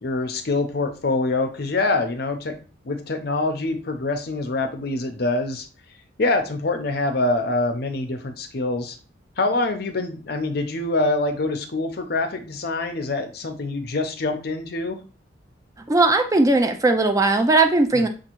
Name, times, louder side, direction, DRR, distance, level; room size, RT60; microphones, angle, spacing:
voice 1, 0.0-2.6 2.8-5.7 6.2-9.0 9.4-15.0 17.9-18.1, left 2 dB, 50° left, 7 dB, 0.6 m, -25 dB
voice 2, 15.9-18.1, right 2 dB, 15° right, 6 dB, 0.3 m, -18 dB
6.5 x 2.4 x 3.0 m, 0.36 s
head